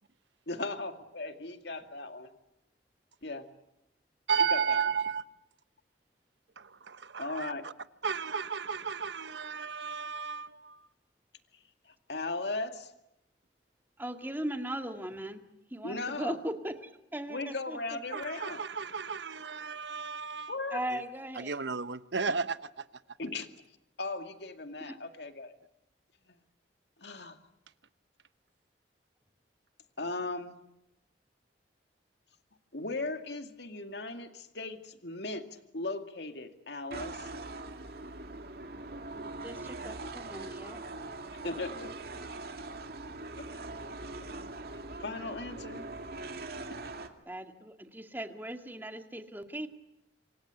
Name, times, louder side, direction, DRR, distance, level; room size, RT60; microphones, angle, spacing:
voice 1, 0.5-2.3 3.2-3.4 4.5-4.8 7.2-7.7 12.1-12.9 15.8-16.4 17.3-18.6 20.5-20.8 23.2-23.5 24.0-25.6 27.0-27.4 30.0-30.6 32.7-37.3 41.4-41.9 43.4-43.5 45.0-45.9, left 2 dB, 70° left, 7 dB, 2.3 m, -37 dB
voice 2, 4.3-5.2 6.6-7.7 8.0-10.9 18.1-20.5 20.9-21.0 21.4-22.8, right 6 dB, 85° right, 13 dB, 1.1 m, -33 dB
voice 3, 14.0-15.4 15.7-17.8 20.7-21.6 24.8-24.9 39.1-40.8 47.3-49.7, right 1 dB, 10° right, 6 dB, 2.2 m, -38 dB
sound 1, 36.9-47.1, right 2 dB, 60° right, 2.4 m, -42 dB
27.0 x 26.5 x 8.3 m, 0.84 s
head